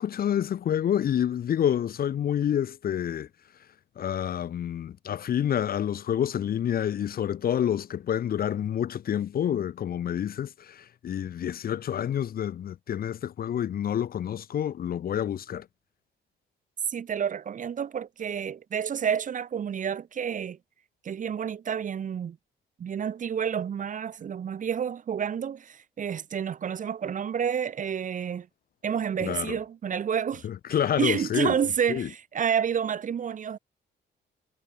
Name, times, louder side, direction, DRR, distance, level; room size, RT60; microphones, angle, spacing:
voice 1, 0.0-3.3 4.0-15.7 29.2-29.6 30.4-31.5 31.9-32.1, left 10 dB, 50° left, 0.6 m, -28 dB
voice 2, 16.9-20.6 21.0-22.4 22.8-28.5 28.8-30.5 31.0-33.6, right 8 dB, 40° right, 0.6 m, -29 dB
cardioid pair, 90°, 20 cm